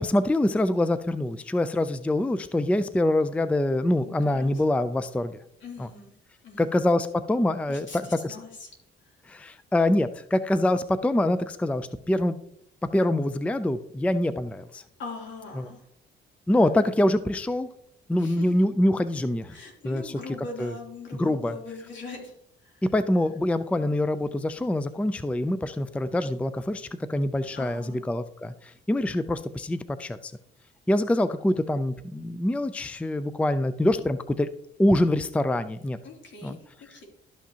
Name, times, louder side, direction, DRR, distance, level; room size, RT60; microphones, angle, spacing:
voice 1, 0.0-5.4 5.8-5.9 6.6-8.4 9.3-12.4 12.9-14.8 15.6-15.7 16.5-17.7 18.1-19.6 19.8-20.2 20.6-20.7 21.2-21.5 22.9-30.3 30.9-34.5 34.8-36.0 36.4-36.6, left 1 dB, 5° left, 13 dB, 0.4 m, -25 dB
voice 2, 4.0-4.6 5.6-6.1 6.4-6.7 7.7-8.7 15.0-15.9 18.2-18.5 19.5-22.3 22.6-22.8 27.5-28.0 36.0-37.0, left 4 dB, 70° left, -1 dB, 3.1 m, -41 dB
12.5 x 5.9 x 2.9 m, 0.72 s
cardioid pair, 90°, 20 cm